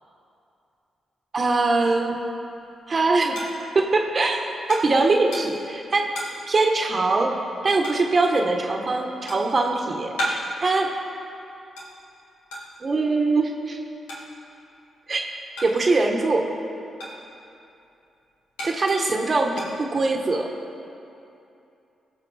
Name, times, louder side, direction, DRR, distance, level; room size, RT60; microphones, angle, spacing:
voice 1, 1.3-2.1 2.9-3.4 3.7-4.4 4.7-6.1 6.5-7.3 7.6-10.9 12.8-13.8 15.1-15.2 15.6-16.4 18.6-20.5, right 3 dB, 45° right, 2 dB, 1.3 m, -22 dB
sound 1, 2.3-16.1 16.5-20.4, equal, 90° left, 1.8 m, -37 dB
18.5 x 6.8 x 3.4 m, 2.7 s
hypercardioid pair, 40°, 0 cm